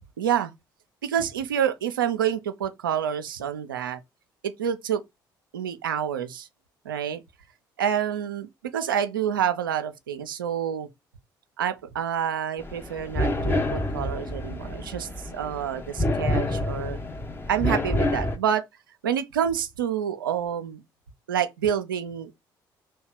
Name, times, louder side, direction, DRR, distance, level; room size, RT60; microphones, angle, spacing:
voice 1, 0.2-0.5 1.0-4.0 4.4-5.0 5.5-6.5 6.8-7.2 7.8-10.9 11.6-17.0 17.5-18.6 19.0-20.8 21.3-22.3, right 9 dB, 85° right, 0.4 m, -28 dB
sound 1, 12.6-18.4, left 1 dB, 20° left, 0.6 m, -28 dB
2.8 x 2.1 x 3.9 m
figure-of-eight pair, 50°, 11 cm